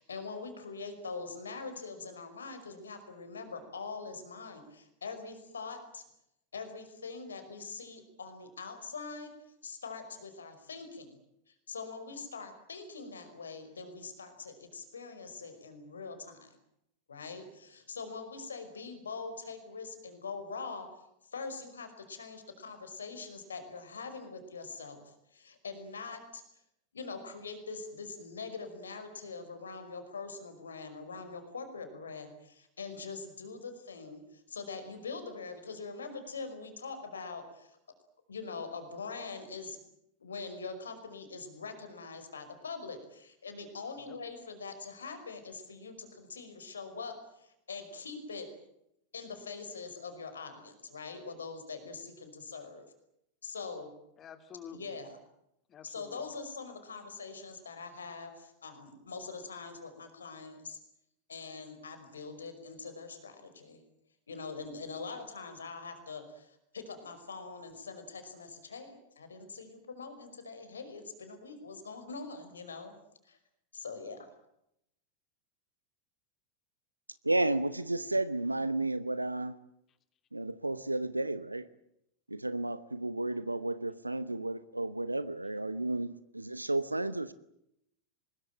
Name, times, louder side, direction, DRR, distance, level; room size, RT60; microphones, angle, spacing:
voice 1, 0.0-6.0 6.5-9.3 9.6-11.2 11.5-16.5 17.1-20.9 21.3-26.4 26.9-37.8 38.3-39.8 40.2-48.5 49.1-52.8 53.4-53.9 54.7-55.2 55.8-60.8 61.3-63.8 64.3-72.9 73.3-73.4 73.7-74.3, left 4 dB, 70° left, 5.3 m, -43 dB
voice 2, 54.2-55.0 55.7-56.2, left 7 dB, 30° left, 2.8 m, -49 dB
voice 3, 77.2-79.6 80.3-81.7 82.3-87.3, right 2 dB, 85° right, 0.9 m, -32 dB
24.0 x 21.5 x 8.9 m
figure-of-eight pair, 90°, 0 cm